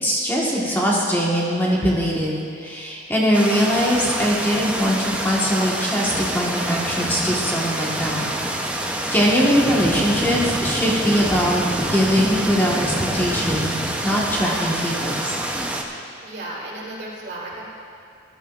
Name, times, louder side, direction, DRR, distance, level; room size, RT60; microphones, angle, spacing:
voice 1, 0.0-8.2 8.8-13.7 14.0-15.3, equal, 10° left, -5 dB, 1.4 m, -21 dB
sound 1, 3.3-15.8, right 1 dB, 5° right, 0.7 m, -26 dB
voice 2, 16.2-17.6, right 1 dB, 60° right, -4 dB, 2.6 m, -34 dB
18.5 x 12.0 x 2.5 m, 2.4 s
head